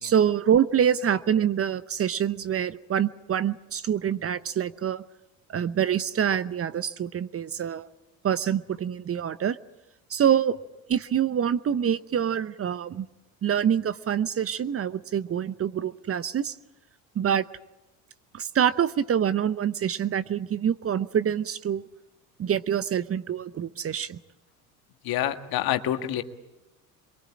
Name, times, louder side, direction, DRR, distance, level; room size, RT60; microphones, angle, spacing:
voice 1, 0.0-5.0 5.5-7.9 8.2-9.6 10.1-10.6 10.9-13.1 13.4-16.6 17.1-17.5 18.3-21.8 22.4-24.2, right 9 dB, 35° right, 16 dB, 0.8 m, -25 dB
voice 2, 25.0-26.2, left 12 dB, 60° left, 8 dB, 1.8 m, -27 dB
23.0 x 23.0 x 8.8 m, 0.98 s
hypercardioid pair, 70°, 42 cm